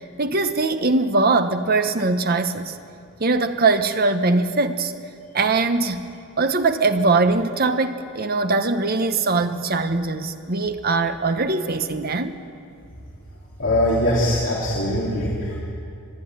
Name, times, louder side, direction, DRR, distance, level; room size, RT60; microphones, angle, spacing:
voice 1, 0.2-2.8 3.2-4.9 5.3-6.0 6.4-12.4, right 3 dB, 45° right, 8 dB, 1.0 m, -21 dB
voice 2, 13.6-15.6, left 1 dB, 60° left, -6 dB, 3.2 m, -21 dB
24.0 x 11.5 x 9.8 m, 2.5 s
head